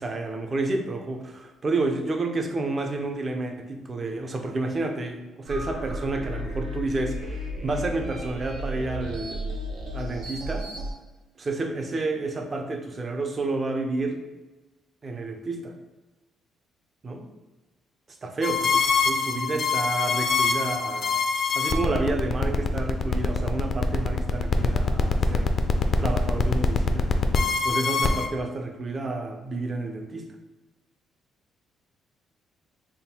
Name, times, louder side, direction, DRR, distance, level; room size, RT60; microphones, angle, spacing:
voice 1, 0.0-9.5 9.9-10.7 11.4-14.2 15.0-15.7 17.0-17.3 18.2-18.7 19.1-21.1 21.5-25.5 26.0-27.1 27.6-30.3, right 2 dB, 30° right, 5 dB, 0.4 m, -30 dB
sound 1, 5.5-10.9, equal, 60° right, 0.9 m, -34 dB
sound 2, 18.4-28.3, left 5 dB, 40° left, 0.3 m, -24 dB
3.6 x 2.2 x 4.2 m, 1.1 s
cardioid pair, 140°, 0 cm